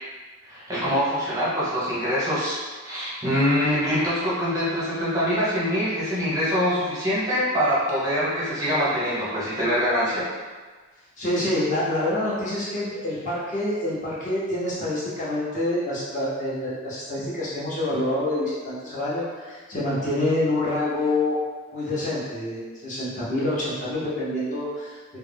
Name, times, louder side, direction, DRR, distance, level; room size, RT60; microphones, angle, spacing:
voice 1, 0.5-10.2, equal, 15° right, -9 dB, 0.6 m, -24 dB
voice 2, 11.2-21.4 21.7-25.0, left 1 dB, 35° left, -9 dB, 0.7 m, -27 dB
2.3 x 2.1 x 3.3 m, 1.4 s
head